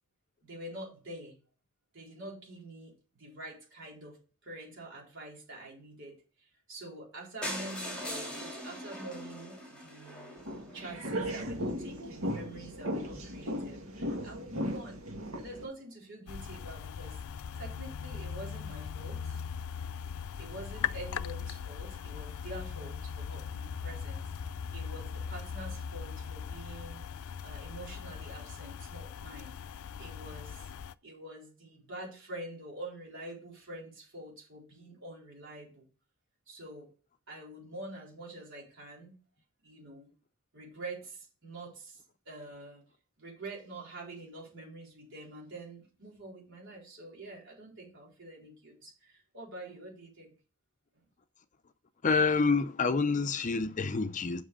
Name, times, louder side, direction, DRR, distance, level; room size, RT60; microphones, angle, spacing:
voice 1, 0.4-1.4 1.9-4.2 4.4-10.4 10.7-15.0 15.4-17.2 17.6-19.4 20.4-24.2 24.7-27.0 27.4-29.5 30.0-30.7 31.0-35.8 36.5-36.9 37.3-39.2 39.6-40.1 40.5-42.8 43.2-50.3, right 1 dB, 60° right, 4.2 m, -46 dB
sound 1, 7.4-11.3 11.9-12.0 12.3-12.4 12.7-12.8 12.9-13.0, equal, 5° left, 3.1 m, -41 dB
sound 2, 10.4-15.6, equal, 75° right, 2.3 m, -36 dB
sound 3, 16.3-30.9, left 7 dB, 85° left, 0.4 m, -39 dB
voice 2, 52.0-54.4, left 4 dB, 35° left, 0.5 m, -27 dB
7.6 x 6.2 x 5.0 m
head